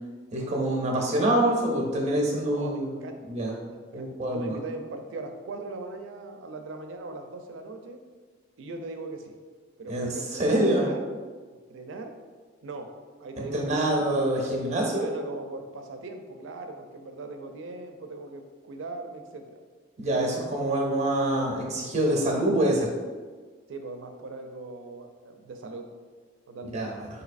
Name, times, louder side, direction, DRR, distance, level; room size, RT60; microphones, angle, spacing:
voice 1, 0.3-3.0 3.3-3.5 3.9-4.6 9.9-10.9 13.4-15.0 20.0-22.9 26.6-27.1, right 1 dB, 40° right, -1 dB, 0.6 m, -26 dB
voice 2, 2.4-3.2 3.7-8.0 8.6-9.4 9.8-10.4 10.8-11.1 11.7-12.1 12.6-12.9 13.2-13.9 15.0-19.6 23.7-25.9 26.5-26.8, right 3 dB, 85° right, 5 dB, 0.4 m, -39 dB
3.9 x 2.7 x 2.5 m, 1.5 s
head